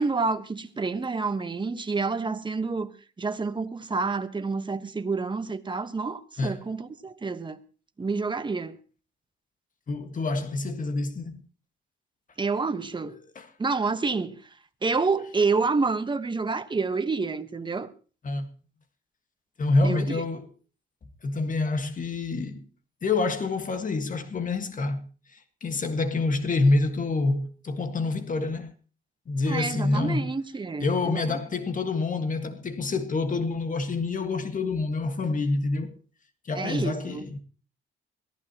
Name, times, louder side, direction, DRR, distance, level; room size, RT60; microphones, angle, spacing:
voice 1, 0.0-2.9 3.2-7.6 8.0-8.8 12.4-13.2 13.6-14.4 14.8-17.9 19.8-20.2 29.5-31.4 36.5-37.2, right 4 dB, 25° right, 1.3 m, -28 dB
voice 2, 9.9-11.4 13.1-13.5 18.2-18.5 19.6-20.5 21.2-22.6 23.0-25.1 25.3-28.7 29.3-30.2 30.8-35.9 36.5-37.4, left 3 dB, 40° left, 1.7 m, -27 dB
22.0 x 14.5 x 3.0 m
cardioid pair, 90°, 20 cm